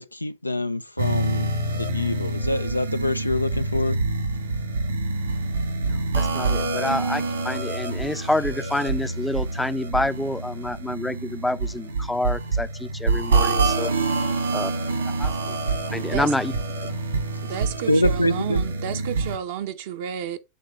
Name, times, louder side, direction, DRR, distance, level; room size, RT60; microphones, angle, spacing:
voice 1, 0.0-4.0 17.9-18.6, left 1 dB, 85° left, 0.3 m, -25 dB
sound 1, 1.0-19.4, right 3 dB, 75° right, 1.9 m, -26 dB
voice 2, 5.8-13.9 14.5-14.7 15.2-15.6 15.9-16.6, left 1 dB, 5° left, 0.5 m, -28 dB
voice 3, 17.5-20.4, right 9 dB, 55° right, 0.7 m, -31 dB
6.5 x 3.6 x 5.0 m
figure-of-eight pair, 90°, 0 cm